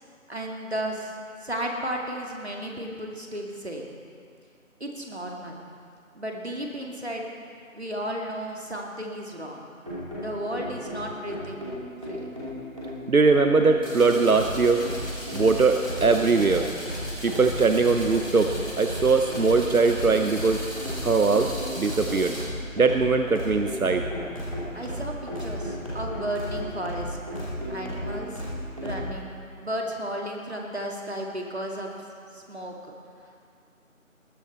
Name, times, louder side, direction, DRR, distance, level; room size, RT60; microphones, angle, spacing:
voice 1, 0.3-1.1 1.4-3.9 4.8-5.6 6.1-7.3 7.7-9.6 10.2-11.6 12.0-12.3 24.7-27.2 27.7-28.4 28.8-31.9 32.3-32.7, right 1 dB, 50° right, 0 dB, 2.2 m, -34 dB
sound 1, 9.9-29.1, equal, 25° right, 2.7 m, -34 dB
voice 2, 13.1-14.8 15.3-16.7 17.2-20.6 21.0-21.5 21.8-22.3 22.8-24.1, right 4 dB, 90° right, 6 dB, 0.9 m, -21 dB
sound 2, 13.8-22.4, equal, 15° left, 2.9 m, -39 dB
20.0 x 10.0 x 4.3 m, 2.3 s
figure-of-eight pair, 180°, 41 cm